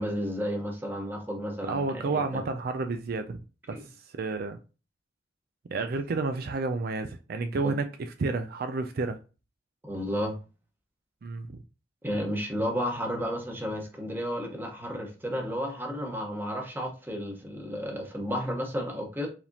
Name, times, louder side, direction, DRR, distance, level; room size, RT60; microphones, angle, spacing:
voice 1, 0.0-2.4 3.7-3.8 7.6-7.7 9.8-10.4 12.0-19.3, equal, 10° right, 1.0 m, -32 dB
voice 2, 1.6-3.4 3.7-3.8 4.1-4.6 5.7-7.9 8.2-9.2 11.2-11.6, right 3 dB, 55° right, 0.4 m, -30 dB
4.7 x 3.5 x 2.8 m
head